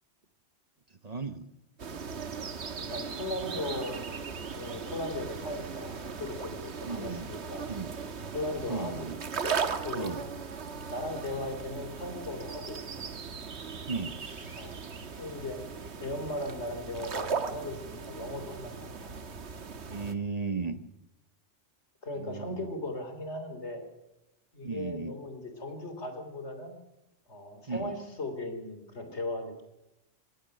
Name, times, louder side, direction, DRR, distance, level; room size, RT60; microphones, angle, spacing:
voice 1, 0.9-1.5 6.9-7.3 7.7-7.9 8.7-9.2 9.9-10.2 13.9-14.2 19.9-20.8 22.1-22.7 24.6-25.2 27.7-27.9, right 4 dB, 35° right, 11 dB, 1.0 m, -35 dB
sound 1, 1.8-20.1, right 5 dB, 70° right, 1.6 m, -38 dB
voice 2, 2.8-7.7 8.3-9.1 9.8-10.1 10.9-12.8 14.6-14.8 15.2-15.6 16.0-19.1 22.0-23.8 24.5-26.8 27.3-29.6, left 1 dB, 75° left, 7 dB, 3.5 m, -38 dB
sound 2, 14.2-18.3, left 1 dB, 50° left, 6.3 m, -63 dB
25.0 x 18.5 x 6.6 m, 0.91 s
omnidirectional pair, 1.2 m